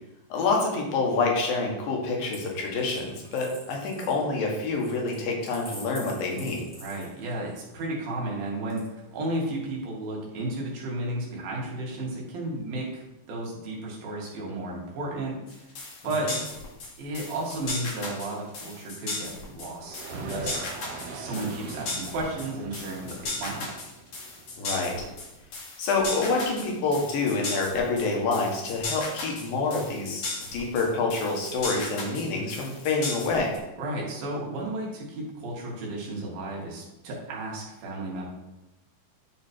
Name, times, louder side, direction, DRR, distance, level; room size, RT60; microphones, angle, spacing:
voice 1, 0.3-6.6 24.6-25.1 25.8-30.3 30.5-33.5, left 3 dB, 70° left, 0 dB, 3.3 m, -27 dB
Coin (dropping), 2.2-7.6 8.7-9.4, equal, 5° left, 1.7 m, -47 dB
voice 2, 6.8-13.0 13.3-15.7 16.0-16.3 17.0-20.6 21.1-23.7 33.8-38.3, right 2 dB, 70° right, -3 dB, 3.7 m, -33 dB
sound 1, 15.5-33.6, left 3 dB, 50° left, 2.3 m, -36 dB
sound 2, 19.8-25.5, right 4 dB, 90° right, 1.4 m, -41 dB
12.5 x 4.3 x 4.4 m, 0.98 s
omnidirectional pair, 4.3 m